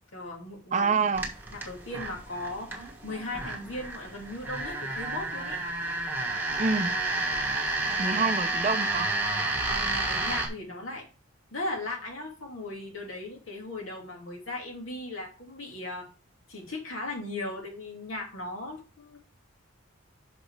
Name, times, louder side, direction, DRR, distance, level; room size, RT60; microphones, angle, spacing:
voice 1, 0.1-0.9 1.5-5.6 6.5-6.7 7.8-8.2 9.7-11.1 11.5-16.1 16.5-19.2, left 2 dB, 80° left, 2.5 m, -37 dB
voice 2, 0.7-1.3 6.6-6.9 8.0-9.1, right 4 dB, 35° right, 0.5 m, -26 dB
sound 1, 1.1-10.5, right 2 dB, 10° right, 1.2 m, -31 dB
5.9 x 5.1 x 4.7 m
head